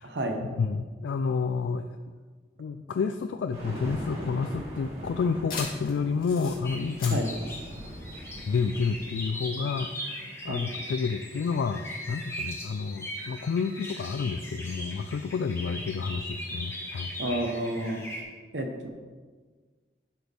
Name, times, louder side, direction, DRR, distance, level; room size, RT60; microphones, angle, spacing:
voice 1, 0.0-0.4 7.1-7.3 10.5-10.6 17.2-18.0 18.5-18.9, right 1 dB, 75° right, 4 dB, 1.0 m, -30 dB
voice 2, 0.6-2.0 2.6-7.2 8.5-17.1, left 5 dB, 85° left, 8 dB, 0.3 m, -30 dB
sound 1, 3.5-8.9, equal, 35° right, 2.1 m, -41 dB
sound 2, 3.7-8.7, left 3 dB, 55° left, 2.1 m, -41 dB
sound 3, 6.6-18.2, left 1 dB, 15° left, 1.2 m, -39 dB
12.0 x 4.1 x 3.4 m, 1.5 s
head